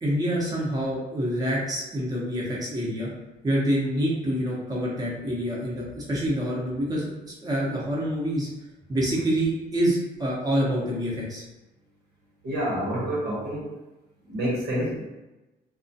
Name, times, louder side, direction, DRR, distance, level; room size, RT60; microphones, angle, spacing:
voice 1, 0.0-3.1 3.4-8.5 8.9-11.4, equal, 20° right, -5 dB, 0.7 m, -27 dB
voice 2, 12.4-13.7 14.3-15.0, equal, 70° right, -4 dB, 0.9 m, -28 dB
2.3 x 2.1 x 2.6 m, 1.1 s
cardioid pair, 90°, 18 cm